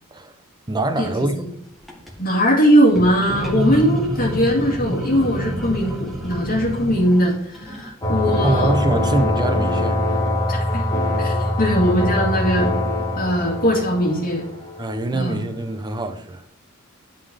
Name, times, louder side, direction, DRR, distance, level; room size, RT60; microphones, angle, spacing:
voice 1, 0.7-1.5 8.4-10.0 14.8-16.4, right 2 dB, 20° right, 0.7 m, -24 dB
sound 1, 1.7-2.1 2.9-7.9, equal, ahead, 1.8 m, -27 dB
voice 2, 2.2-8.7 10.5-10.9 11.2-12.7 13.2-14.4 15.1-15.4, equal, 40° left, 2.3 m, -20 dB
sound 2, 8.0-15.2, left 1 dB, 15° left, 1.6 m, -23 dB
11.0 x 4.3 x 4.8 m
head